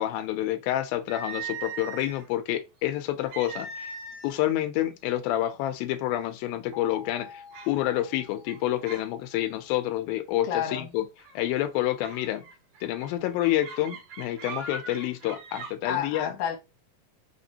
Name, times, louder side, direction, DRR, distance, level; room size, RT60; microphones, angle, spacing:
voice 1, 0.0-3.9 4.2-11.0 11.4-12.5 12.8-16.3, left 13 dB, 90° left, 2.4 m, -28 dB
sound 1, 1.1-2.3 3.3-4.4 4.8-5.0 5.7-5.8 6.3-6.7 7.5-7.8 8.4-9.1 9.4-9.7 11.2-11.4 12.0-15.7, right 4 dB, 65° right, 2.7 m, -40 dB
sound 2, 6.7-9.7, left 6 dB, 50° right, 2.0 m, -48 dB
voice 2, 10.4-10.9 15.8-16.6, left 8 dB, 60° left, 1.6 m, -30 dB
5.8 x 3.3 x 2.8 m
omnidirectional pair, 4.1 m